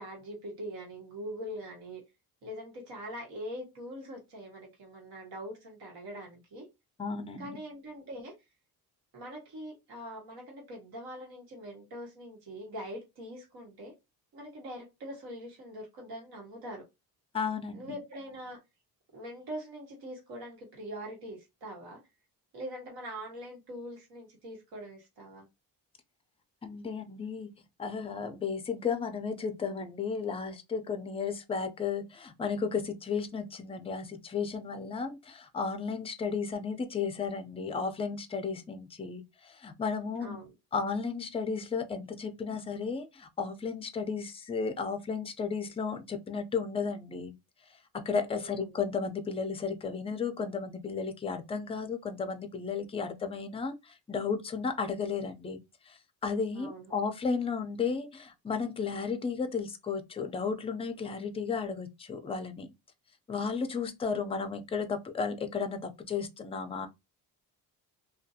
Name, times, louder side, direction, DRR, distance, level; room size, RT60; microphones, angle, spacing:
voice 1, 0.0-2.0 2.4-6.7 7.4-8.3 9.1-13.9 14.3-16.8 17.7-18.6 19.1-22.0 22.5-25.5 40.2-40.5 48.3-48.8 56.5-56.8, equal, 85° right, 1.2 m, -43 dB
voice 2, 7.0-7.6 17.3-18.0 26.6-27.5 27.8-40.4 40.7-47.4 47.7-55.6 55.9-62.7 63.3-66.9, left 5 dB, 15° left, 0.3 m, -34 dB
2.5 x 2.3 x 2.6 m
cardioid pair, 125°, 38 cm